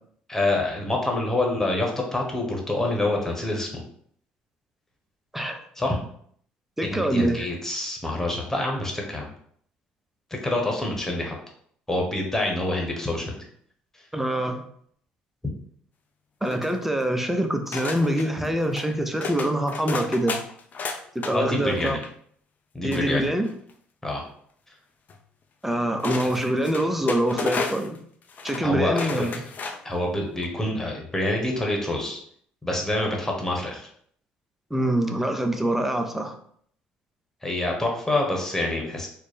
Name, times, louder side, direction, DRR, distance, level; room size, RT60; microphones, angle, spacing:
voice 1, 0.3-3.7 5.8-6.0 6.9-9.3 10.4-11.4 11.9-13.3 18.4-18.5 21.3-22.0 22.7-23.3 24.0-24.2 26.2-26.3 28.6-29.3 29.8-32.2 32.6-33.9 37.4-39.1, left 2 dB, 10° left, 0 dB, 1.2 m, -26 dB
voice 2, 6.8-7.5 14.1-14.6 16.4-20.4 21.1-22.0 22.8-23.5 25.6-28.0 28.4-29.4 34.7-36.3, right 1 dB, 5° right, 5 dB, 0.6 m, -25 dB
sound 1, 16.4-17.1 17.7-18.3 18.7-18.9 19.2-21.3 21.7-22.1 22.9-23.7 25.1-25.2 26.0-28.0 28.3-28.6 28.9-29.9 30.3-30.4, left 4 dB, 45° left, 0.5 m, -32 dB
3.2 x 2.1 x 4.2 m, 0.62 s
hypercardioid pair, 65°, 4 cm